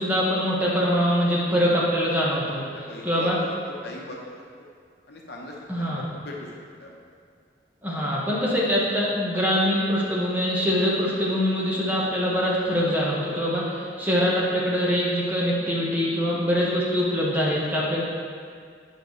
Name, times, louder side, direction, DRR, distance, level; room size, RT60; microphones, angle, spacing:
voice 1, 0.0-2.6 3.0-3.4 5.7-6.0 7.8-18.0, equal, 10° right, -6 dB, 1.1 m, -23 dB
voice 2, 2.9-3.3 3.8-4.2 5.1-7.0, left 2 dB, 60° left, -2 dB, 0.9 m, -40 dB
8.9 x 5.3 x 3.2 m, 2.1 s
head